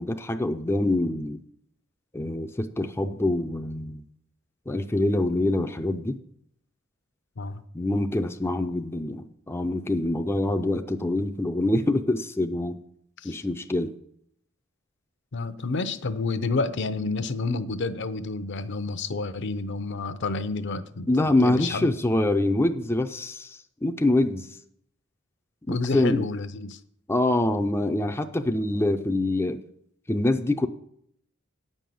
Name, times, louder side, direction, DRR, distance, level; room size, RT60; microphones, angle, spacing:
voice 1, 0.0-1.4 2.1-4.0 4.7-6.2 7.7-12.7 13.2-13.9 21.1-24.6 25.7-26.3 27.1-29.6 30.1-30.7, left 1 dB, 10° left, 5 dB, 0.4 m, -25 dB
voice 2, 15.3-21.9 25.7-26.8, left 3 dB, 60° left, 12 dB, 0.6 m, -30 dB
9.2 x 5.4 x 7.6 m, 0.70 s
head